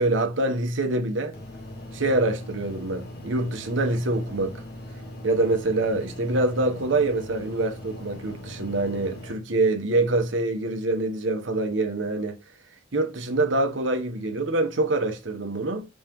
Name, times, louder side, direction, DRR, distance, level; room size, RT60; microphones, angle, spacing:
voice 1, 0.0-1.4 1.9-4.5 5.2-12.4 12.9-15.9, right 2 dB, 80° right, 1.1 m, -25 dB
sound 1, 1.3-9.3, left 1 dB, 55° left, 1.6 m, -40 dB
6.3 x 5.5 x 3.1 m
head